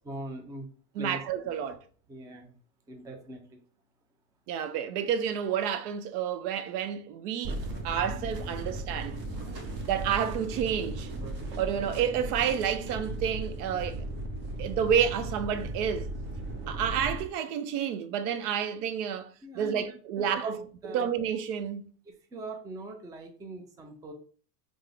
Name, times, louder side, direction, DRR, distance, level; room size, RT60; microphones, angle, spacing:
voice 1, 0.1-0.7 1.0-1.2 2.1-2.5 2.9-3.6 16.8-16.9 19.4-19.8 20.2-21.1 22.3-24.1, right 2 dB, 10° right, 0.4 m, -42 dB
voice 2, 1.0-1.8 4.5-7.6 7.8-9.2 9.8-11.1 11.6-14.0 14.6-16.1 16.7-21.9, right 8 dB, 70° right, 0.6 m, -30 dB
sound 1, 7.4-17.2, right 2 dB, 45° right, 1.0 m, -36 dB
3.4 x 2.0 x 3.2 m
hypercardioid pair, 85°, 48 cm